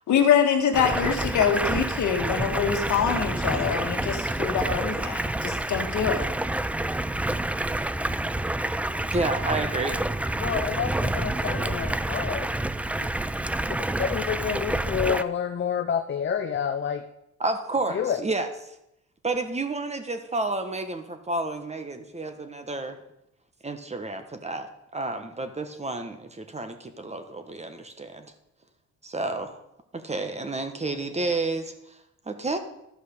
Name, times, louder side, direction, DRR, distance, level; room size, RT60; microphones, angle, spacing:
voice 1, 0.1-6.2, left 7 dB, 70° left, 4 dB, 1.6 m, -24 dB
Stream, 0.7-15.2, right 1 dB, 5° right, 0.3 m, -28 dB
voice 2, 9.1-10.0 17.4-18.5 19.2-23.0 23.6-28.3 29.0-29.6 29.9-32.0 32.3-32.6, right 2 dB, 20° right, 7 dB, 1.2 m, -30 dB
voice 3, 10.4-12.5 13.0-13.1 14.0-17.0 17.9-18.2, left 8 dB, 40° left, 6 dB, 0.7 m, -28 dB
12.0 x 5.4 x 6.5 m, 0.83 s
cardioid pair, 90°, 30 cm